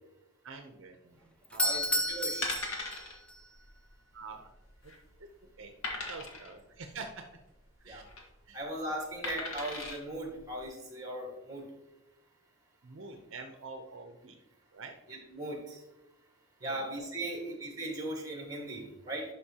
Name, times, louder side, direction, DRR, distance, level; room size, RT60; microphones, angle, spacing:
voice 1, 0.4-1.8 4.1-4.5 5.2-5.3 5.6-5.7 6.1-7.2 7.8-8.0 8.5-8.6 12.8-14.4 14.7-14.9 16.6-16.8, right 4 dB, 60° right, 5 dB, 0.6 m, -46 dB
Doorbell, 1.4-3.4, left 1 dB, 5° left, 0.4 m, -32 dB
voice 2, 1.6-2.5 7.9-8.0 8.5-11.6 15.1-15.8 16.6-19.2, right 1 dB, 15° right, 1 dB, 1.6 m, -38 dB
sound 1, 1.8-1.9 2.4-3.1 3.5-3.7 3.9-4.0 4.6-5.1 5.8-6.5 7.8-8.2 9.2-10.0 10.6-10.7, left 2 dB, 70° left, 1.6 m, -38 dB
11.5 x 5.3 x 2.9 m, 0.98 s
head